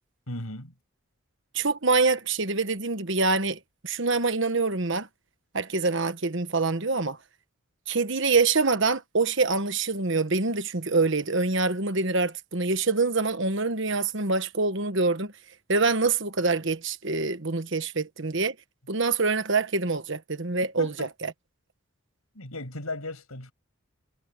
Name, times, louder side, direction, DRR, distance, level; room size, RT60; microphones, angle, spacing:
voice 1, 0.3-0.7 20.8-21.1 22.3-23.5, left 2 dB, 85° left, 6.6 m, -36 dB
voice 2, 1.5-5.1 5.5-7.2 7.9-15.3 15.7-18.5 18.9-21.3, right 3 dB, 55° right, 1.4 m, -25 dB
head